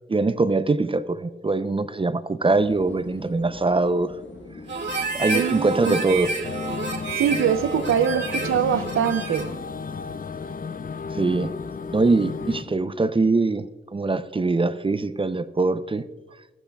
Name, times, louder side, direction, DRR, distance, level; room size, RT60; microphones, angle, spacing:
voice 1, 0.1-4.1 5.1-6.3 11.1-11.5 11.9-16.0, right 3 dB, 25° right, 13 dB, 0.5 m, -23 dB
sound 1, 2.5-12.8, left 3 dB, 60° left, 1.2 m, -43 dB
Harmonica, 4.7-9.6, right 3 dB, 55° right, 1.9 m, -30 dB
voice 2, 5.3-6.0 7.2-9.5, right 8 dB, 80° right, 13 dB, 0.5 m, -23 dB
sound 2, 6.4-12.6, left 5 dB, 45° left, 0.4 m, -34 dB
13.5 x 11.5 x 2.3 m, 1.2 s
cardioid pair, 45°, 21 cm